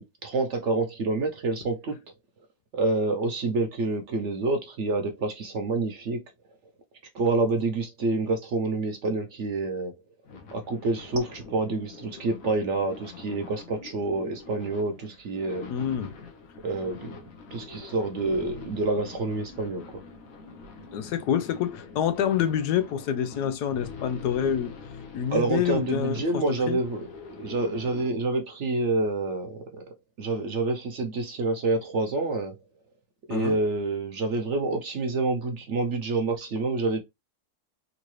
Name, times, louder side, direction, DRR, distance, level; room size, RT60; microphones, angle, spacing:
voice 1, 0.0-2.0 2.7-6.2 7.1-9.9 10.5-15.7 16.6-17.2 17.5-20.0 25.3-27.1 27.3-29.8 30.2-32.6 33.3-37.0, right 3 dB, 60° right, 0.8 m, -27 dB
sound 1, 10.2-28.1, left 5 dB, 60° left, 1.3 m, -44 dB
voice 2, 15.7-16.1 20.9-24.7 25.1-26.8 33.3-33.6, left 9 dB, 85° left, 1.2 m, -27 dB
3.8 x 2.6 x 3.1 m
omnidirectional pair, 1.7 m